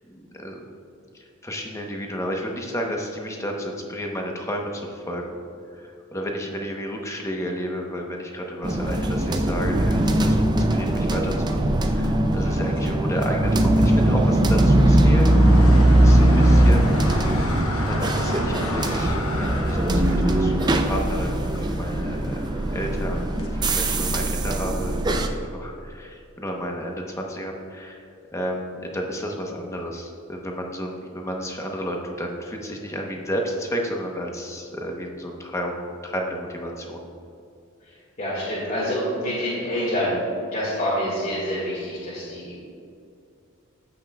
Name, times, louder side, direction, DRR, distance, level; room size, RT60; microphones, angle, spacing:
voice 1, 0.1-0.6 1.1-5.4 5.7-16.9 17.8-28.1 28.3-37.1, equal, 15° left, 1 dB, 0.8 m, -32 dB
sound 1, 8.6-25.3, right 1 dB, 20° right, 0.4 m, -20 dB
voice 2, 12.4-12.8 38.2-40.2 40.4-42.6, equal, 45° left, -9 dB, 1.8 m, -27 dB
sound 2, 12.7-24.2, left 1 dB, 80° left, 0.9 m, -33 dB
14.5 x 5.7 x 2.3 m, 2.5 s
head